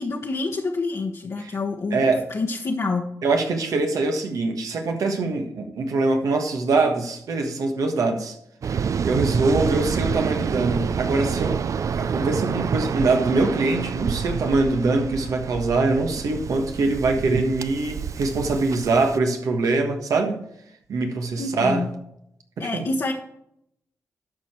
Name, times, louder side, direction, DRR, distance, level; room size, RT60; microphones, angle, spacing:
voice 1, 0.0-2.0 2.3-3.1 21.4-21.9 22.6-23.1, left 3 dB, 55° left, 0 dB, 1.1 m, -27 dB
voice 2, 1.9-2.2 3.2-8.4 9.0-11.6 11.9-20.4 20.9-21.8 22.6-22.9, right 3 dB, 80° right, 4 dB, 1.4 m, -23 dB
Waves surf, 8.6-19.2, right 6 dB, 65° right, 0.4 m, -28 dB
12.5 x 5.0 x 4.4 m, 0.75 s
cardioid pair, 50°, 6 cm